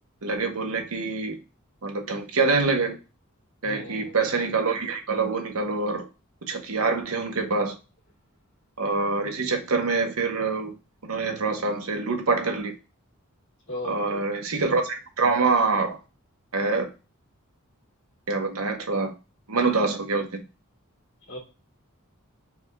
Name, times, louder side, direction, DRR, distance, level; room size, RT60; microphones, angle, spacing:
voice 1, 0.2-1.4 1.8-3.0 3.6-6.1 6.5-7.8 8.8-10.7 11.0-12.7 13.8-16.0 16.5-16.9 18.3-19.1 19.5-20.4, right 4 dB, 80° right, 1.0 m, -25 dB
voice 2, 3.6-4.1 13.7-14.2 21.3-21.4, left 1 dB, 60° left, 2.1 m, -37 dB
4.9 x 2.5 x 3.4 m
head